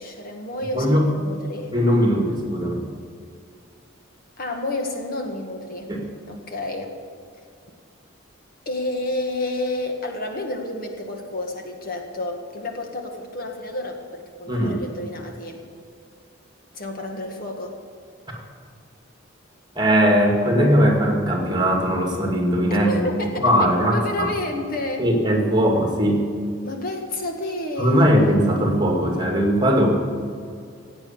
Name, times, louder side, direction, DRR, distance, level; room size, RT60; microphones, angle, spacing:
voice 1, 0.0-1.7 4.4-5.9 6.3-7.0 8.7-15.6 16.7-17.8 22.7-25.1 26.6-28.1, left 2 dB, 45° left, 3 dB, 1.8 m, -30 dB
voice 2, 1.7-2.9 5.9-6.0 14.5-14.8 19.8-22.9 23.4-24.3 25.0-26.2 27.8-29.9, equal, 20° right, 1 dB, 2.3 m, -19 dB
16.5 x 8.9 x 8.8 m, 2.3 s
head